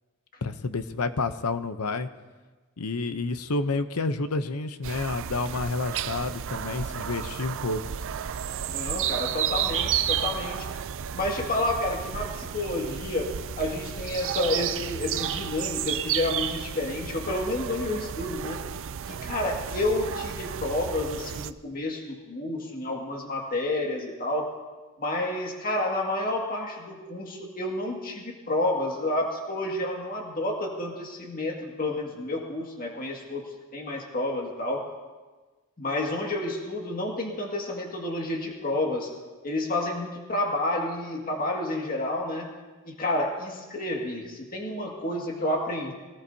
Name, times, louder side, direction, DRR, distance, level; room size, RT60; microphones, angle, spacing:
voice 1, 0.4-2.1 2.8-7.8, left 3 dB, 85° left, 11 dB, 0.8 m, -29 dB
sound 1, 4.8-21.5, right 9 dB, 60° right, 0.5 m, -32 dB
voice 2, 8.7-10.7 11.1-13.3 13.6-18.6 19.1-24.5 25.0-33.5 33.7-34.9 35.8-39.1 39.4-42.5 42.8-45.9, left 1 dB, 40° left, -1 dB, 2.1 m, -30 dB
23.0 x 18.5 x 2.8 m, 1.3 s
head